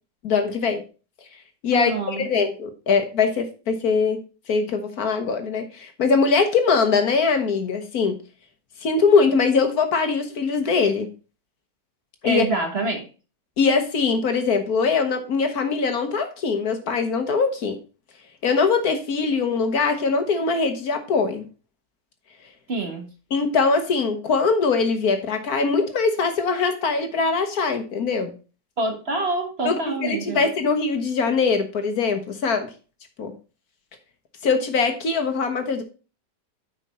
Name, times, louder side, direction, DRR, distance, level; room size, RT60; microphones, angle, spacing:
voice 1, 0.2-0.8 1.6-4.2 4.5-8.2 8.8-11.1 12.2-12.4 13.6-17.8 18.4-21.5 23.3-28.3 29.6-32.7 33.2-33.3 34.4-35.8, left 4 dB, 60° left, 7 dB, 1.5 m, -22 dB
voice 2, 1.7-2.3 12.2-13.1 22.7-23.1 28.8-30.5, right 2 dB, 40° right, 4 dB, 1.5 m, -26 dB
8.9 x 5.3 x 4.2 m, 0.34 s
omnidirectional pair, 1.8 m